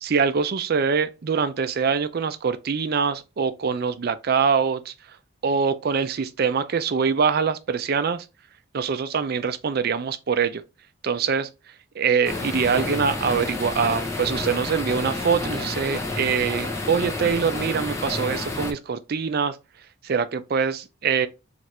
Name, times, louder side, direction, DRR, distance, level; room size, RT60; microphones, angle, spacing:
voice 1, 0.0-4.9 5.4-8.3 8.7-10.6 11.0-11.5 12.0-19.6 20.0-21.3, right 6 dB, 45° right, 0.4 m, -24 dB
sound 1, 12.2-18.7, left 2 dB, 15° left, 0.6 m, -30 dB
4.4 x 2.5 x 3.1 m
head